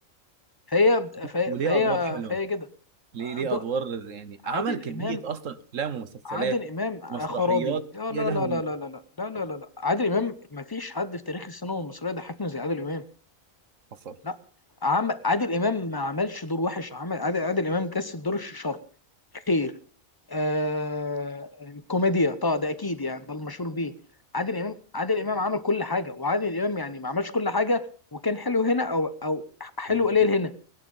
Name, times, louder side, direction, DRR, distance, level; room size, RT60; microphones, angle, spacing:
voice 1, 0.7-2.6 3.2-3.6 4.4-5.2 6.3-13.0 14.2-14.4 14.8-18.8 19.5-19.7 20.3-23.9 24.3-30.5, left 3 dB, 20° left, 12 dB, 0.9 m, -27 dB
voice 2, 1.5-2.4 3.1-6.6 7.1-7.8 8.1-8.6 14.0-14.2 29.9-30.1, right 6 dB, 70° right, 13 dB, 1.4 m, -31 dB
18.5 x 11.0 x 5.6 m, 0.41 s
omnidirectional pair, 1.4 m